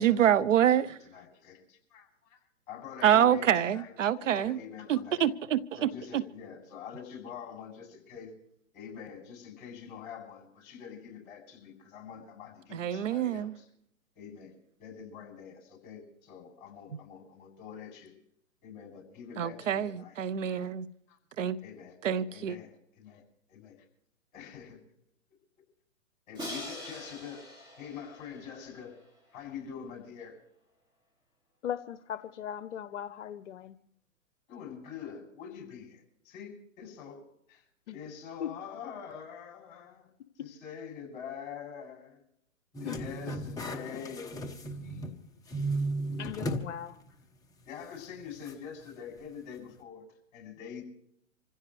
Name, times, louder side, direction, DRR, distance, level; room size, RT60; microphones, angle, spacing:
voice 1, 0.0-0.9 3.0-4.6 4.9-6.2 12.7-13.5 19.4-20.9 21.4-21.6 22.0-22.6, right 10 dB, 60° right, 0.8 m, -26 dB
voice 2, 0.7-2.4 2.7-5.2 5.8-8.3 8.7-13.7 14.2-18.1 18.6-20.7 21.1-23.2 23.5-23.8 24.3-24.8 26.3-27.4 27.8-28.9 29.3-30.4 34.5-37.6 37.9-40.1 40.4-42.2 42.8-45.5 47.6-50.8, left 7 dB, 35° left, 7.3 m, -45 dB
Crash cymbal, 26.3-29.3, left 1 dB, 10° right, 5.7 m, -43 dB
voice 3, 31.6-33.8 37.9-38.0 38.4-38.5 40.4-40.5 42.8-43.0 46.2-47.0, left 9 dB, 55° left, 1.0 m, -38 dB
sound 1, 42.7-45.2 45.5-46.7 47.1-47.2 48.5-48.6, right 1 dB, 10° left, 1.1 m, -35 dB
26.5 x 15.5 x 3.3 m
hypercardioid pair, 135°, 43 cm